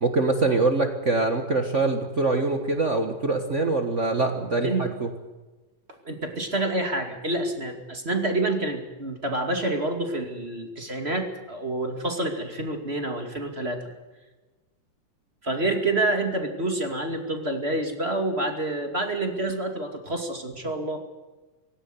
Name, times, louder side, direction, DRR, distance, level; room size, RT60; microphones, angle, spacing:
voice 1, 0.0-5.1, right 3 dB, 85° right, 5 dB, 0.6 m, -24 dB
voice 2, 6.0-13.9 15.4-21.0, right 2 dB, 20° right, 4 dB, 2.2 m, -28 dB
17.5 x 17.0 x 9.8 m, 1.2 s
omnidirectional pair, 3.8 m